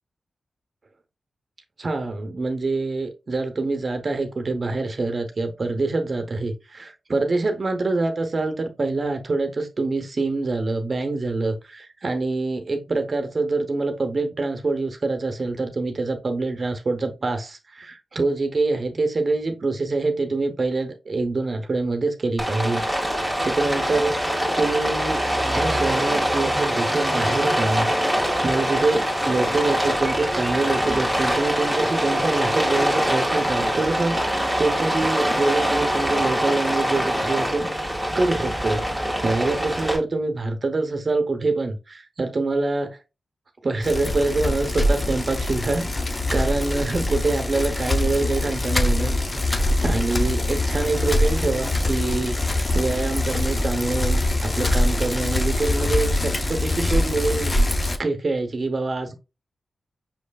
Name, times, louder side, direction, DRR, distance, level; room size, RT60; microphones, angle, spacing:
voice 1, 1.8-24.1 24.6-25.2 25.5-27.9 28.4-37.7 38.1-43.0 43.6-52.4 52.7-57.5 58.0-59.2, right 3 dB, 45° right, 0.7 m, -25 dB
Rain, 22.4-40.0, equal, 5° left, 1.7 m, -23 dB
Bicycle, 43.8-58.0, left 1 dB, 30° left, 0.5 m, -23 dB
5.8 x 3.1 x 2.3 m
cardioid pair, 75°, 0 cm